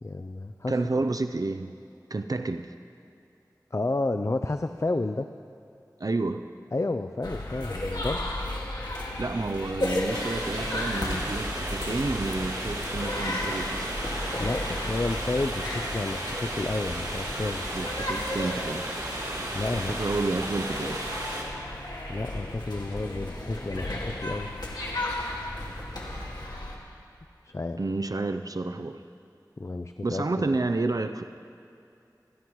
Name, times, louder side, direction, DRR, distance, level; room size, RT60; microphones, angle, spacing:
voice 1, 0.0-1.0 3.7-5.3 6.7-8.2 14.4-17.6 19.5-20.0 22.1-24.5 27.4-27.8 29.6-30.4, left 2 dB, 45° left, 8 dB, 0.5 m, -31 dB
voice 2, 0.7-1.7 2.1-2.7 6.0-6.5 9.2-14.1 17.7-18.9 19.7-21.1 27.8-29.0 30.0-31.2, right 2 dB, 55° right, 8 dB, 0.5 m, -30 dB
sound 1, 7.2-26.8, left 1 dB, 75° left, 1.9 m, -34 dB
sound 2, 10.1-21.4, right 1 dB, 70° right, 2.7 m, -34 dB
27.0 x 11.0 x 3.1 m, 2.6 s
wide cardioid pair, 40°, 7 cm